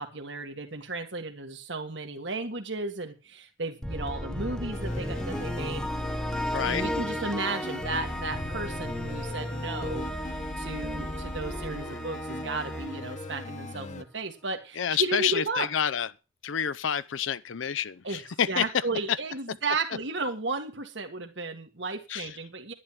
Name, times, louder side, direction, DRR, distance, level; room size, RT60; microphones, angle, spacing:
voice 1, 0.0-5.9 6.7-15.7 18.0-18.2 18.5-22.7, right 3 dB, 65° right, 1.8 m, -34 dB
sound 1, 3.8-14.0, equal, 5° left, 1.2 m, -34 dB
sound 2, 4.7-14.0, left 2 dB, 40° left, 1.0 m, -40 dB
voice 2, 6.5-6.8 14.8-16.1 16.4-18.7 22.1-22.4, left 8 dB, 80° left, 0.6 m, -28 dB
11.0 x 10.5 x 5.9 m
head